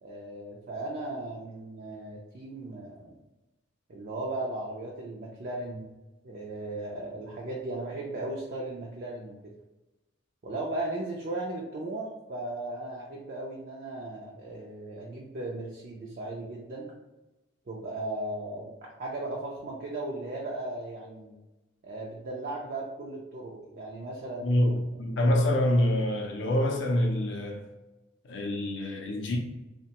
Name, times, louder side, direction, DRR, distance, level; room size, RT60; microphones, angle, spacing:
voice 1, 0.0-3.1 3.9-5.9 6.2-9.4 10.4-16.9 17.7-21.4 21.8-24.6, right 2 dB, 45° right, 0.4 m, -36 dB
voice 2, 24.4-27.6 28.2-29.4, left 1 dB, 60° left, 0.4 m, -26 dB
2.9 x 2.1 x 2.8 m
head